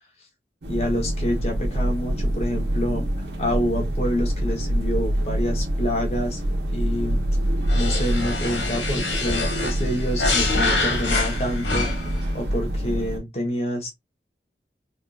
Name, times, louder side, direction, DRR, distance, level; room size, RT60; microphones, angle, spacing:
sound 1, 0.6-13.2, right 1 dB, 85° right, 1.0 m, -26 dB
voice 1, 0.7-6.4 6.7-7.2 7.7-11.9 12.3-13.9, equal, 35° left, 0.9 m, -27 dB
sound 2, 7.7-12.2, left 3 dB, 85° left, 1.2 m, -26 dB
3.6 x 2.4 x 2.3 m
head